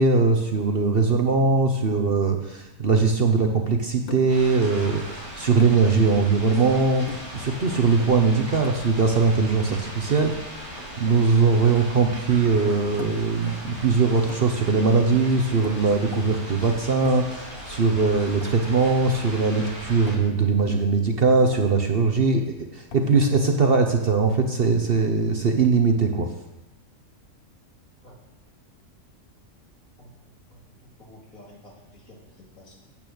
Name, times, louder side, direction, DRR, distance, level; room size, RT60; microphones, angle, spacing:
voice 1, 0.0-7.1 7.3-10.4 11.0-26.3, right 4 dB, 45° right, 4 dB, 1.0 m, -21 dB
sound 1, 4.1-4.5 5.6-5.9 7.1-7.5 8.6-9.0 10.2-10.5 13.0-13.4 14.3-14.7 15.6-16.0 17.1-17.5 18.4-18.7 20.1-20.3 21.5-21.9 22.9-23.2, left 4 dB, 45° left, 0.9 m, -39 dB
sound 2, 4.3-20.1, equal, 20° left, 5.1 m, -38 dB
voice 2, 31.0-32.7, left 1 dB, 65° left, -2 dB, 2.9 m, -50 dB
9.1 x 8.8 x 6.4 m, 0.99 s
omnidirectional pair, 1.5 m